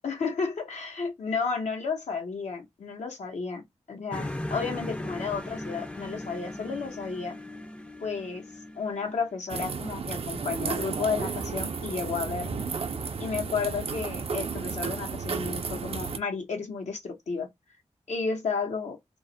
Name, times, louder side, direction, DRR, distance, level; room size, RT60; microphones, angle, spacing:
voice 1, 0.0-7.4 8.0-8.4 8.8-12.6 13.2-17.5 18.1-19.0, left 5 dB, 80° left, 0.8 m, -32 dB
sound 1, 4.1-9.7, left 1 dB, 10° left, 0.4 m, -38 dB
sound 2, 9.5-16.2, right 5 dB, 55° right, 0.4 m, -33 dB
2.3 x 2.0 x 2.6 m
cardioid pair, 55°, 12 cm